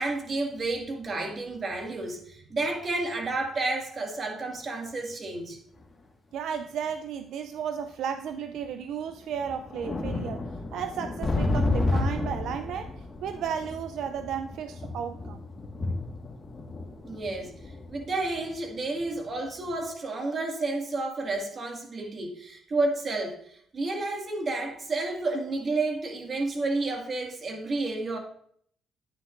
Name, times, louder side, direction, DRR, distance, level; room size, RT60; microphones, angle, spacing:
voice 1, 0.0-5.6 17.0-17.5 17.9-28.2, right 2 dB, 40° right, 2.1 m, -31 dB
sound 1, 5.8-5.9 6.9-7.0 8.1-8.2 8.6-8.7 9.2-19.3 19.6-19.8, left 2 dB, 30° left, 1.6 m, -32 dB
voice 2, 6.3-10.4 10.7-15.5, right 8 dB, 80° right, 0.4 m, -34 dB
10.0 x 9.6 x 2.6 m
cardioid pair, 90°, 0 cm